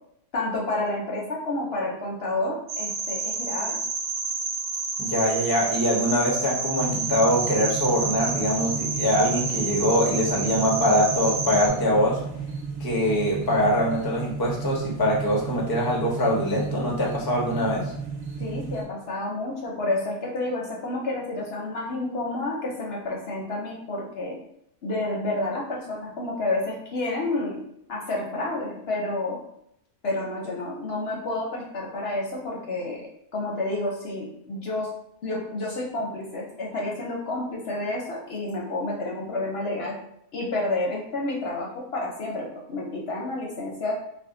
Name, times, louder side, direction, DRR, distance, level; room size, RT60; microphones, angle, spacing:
voice 1, 0.3-3.8 18.4-24.3 24.8-27.6 27.9-29.4 30.0-33.0 33.3-34.9 35.2-39.9 40.3-43.9, left 2 dB, 55° left, -2 dB, 0.7 m, -30 dB
sound 1, 2.7-11.7, right 4 dB, 75° right, 1.0 m, -29 dB
voice 2, 5.0-12.2 12.8-17.8, equal, 35° left, -2 dB, 0.3 m, -23 dB
sound 2, 6.8-18.8, right 3 dB, 50° right, 0.5 m, -34 dB
2.5 x 2.5 x 3.6 m, 0.74 s
omnidirectional pair, 1.5 m